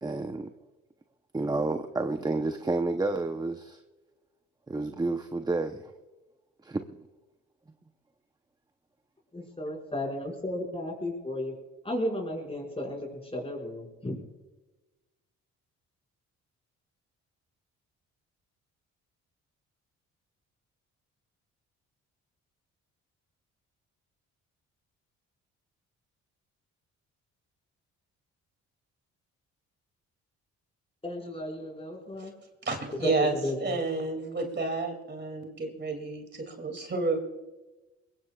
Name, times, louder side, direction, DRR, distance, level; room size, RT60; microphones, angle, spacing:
voice 1, 0.0-0.5 1.3-3.8 4.7-5.9 6.6-6.8, right 2 dB, 15° right, 7 dB, 0.7 m, -30 dB
voice 2, 9.3-11.5 11.8-14.2 31.0-32.3 32.9-33.6, left 1 dB, 20° left, 0 dB, 5.3 m, -34 dB
voice 3, 32.6-37.2, right 3 dB, 35° right, 4 dB, 2.5 m, -31 dB
22.5 x 21.0 x 2.4 m, 1.1 s
cardioid pair, 90°, 30 cm